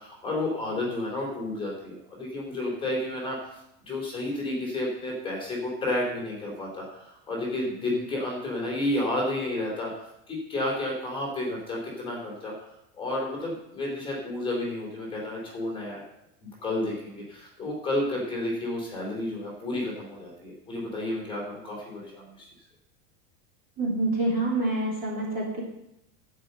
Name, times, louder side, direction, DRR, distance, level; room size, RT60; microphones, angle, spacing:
voice 1, 0.0-3.6 3.9-12.5 13.0-16.0 16.4-22.4, left 1 dB, 10° left, -3 dB, 3.2 m, -31 dB
voice 2, 23.8-25.6, right 2 dB, 20° right, -4 dB, 3.1 m, -27 dB
12.5 x 5.5 x 7.8 m, 0.83 s
supercardioid pair, 175°, 42 cm